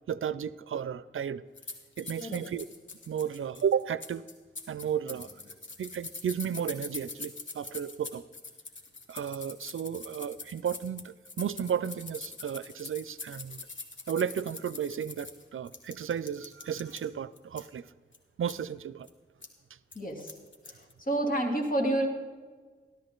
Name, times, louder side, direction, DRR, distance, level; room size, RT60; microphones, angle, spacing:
voice 1, 0.1-1.4 2.0-2.7 3.1-4.2 4.7-5.3 5.8-8.2 9.1-13.6 14.1-17.9 18.4-19.1, right 8 dB, 80° right, 17 dB, 0.5 m, -33 dB
sound 1, 1.6-17.0 17.4-17.7 18.1-18.2 18.5-18.6 19.0-19.1 19.4-19.5 19.9-20.9, left 3 dB, 65° left, 1.8 m, -43 dB
voice 2, 19.9-20.3 20.7-22.1, right 1 dB, 40° left, 0 dB, 3.1 m, -29 dB
14.5 x 12.5 x 3.9 m, 1.5 s
wide cardioid pair, 75°, 21 cm